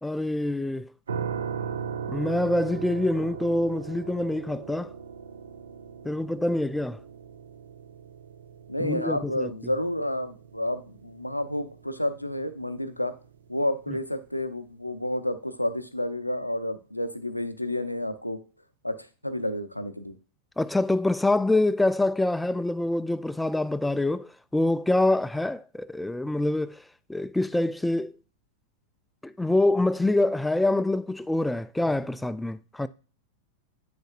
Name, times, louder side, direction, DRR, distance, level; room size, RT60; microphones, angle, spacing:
voice 1, 0.0-0.9 2.1-4.9 6.0-7.0 8.8-9.5 20.6-26.8 27.1-28.1 29.2-32.9, left 2 dB, 5° left, 0.3 m, -25 dB
sound 1, 1.1-13.9, right 7 dB, 70° right, 0.6 m, -39 dB
voice 2, 8.7-13.1 13.5-18.4 18.8-20.2, left 1 dB, 90° left, 0.5 m, -30 dB
8.7 x 6.4 x 2.5 m
figure-of-eight pair, 90°, 0 cm